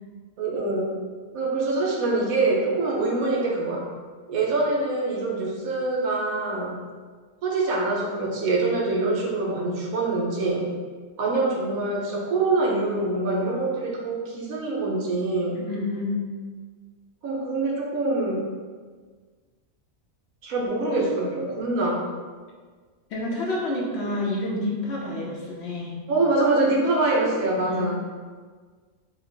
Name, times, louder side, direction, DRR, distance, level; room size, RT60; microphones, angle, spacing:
voice 1, 0.4-0.9 1.3-3.8 4.3-6.7 7.4-10.7 11.2-15.6 17.2-18.5 20.4-22.0 26.1-28.0, right 2 dB, 85° right, -2 dB, 1.2 m, -24 dB
voice 2, 15.5-16.3 23.1-25.9 27.7-27.8, left 2 dB, 60° left, -3 dB, 0.9 m, -29 dB
4.4 x 2.0 x 3.8 m, 1.5 s
omnidirectional pair, 1.4 m